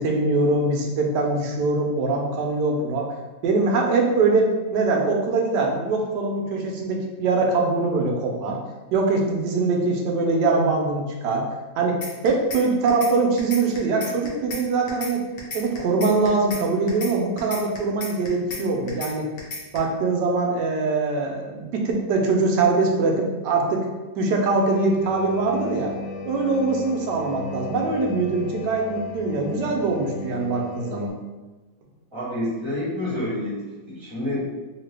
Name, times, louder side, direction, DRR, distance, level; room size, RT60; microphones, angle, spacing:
voice 1, 0.0-3.1 3.4-8.6 8.9-11.4 11.8-15.2 15.5-19.3 19.7-23.8 24.2-25.9 26.2-31.1, right 3 dB, 85° right, 1 dB, 1.2 m, -23 dB
sound 1, 12.0-12.6 12.9-13.1 13.4-14.6 14.9-15.1 15.4-16.6 16.9-17.1 17.4-18.6 18.9-19.1 19.4-19.8, left 3 dB, 55° left, 0.6 m, -33 dB
sound 2, 24.6-31.1, left 4 dB, 80° left, 1.2 m, -35 dB
voice 2, 32.1-34.5, left 1 dB, 20° right, -7 dB, 1.0 m, -28 dB
2.9 x 2.8 x 3.3 m, 1.2 s
omnidirectional pair, 1.8 m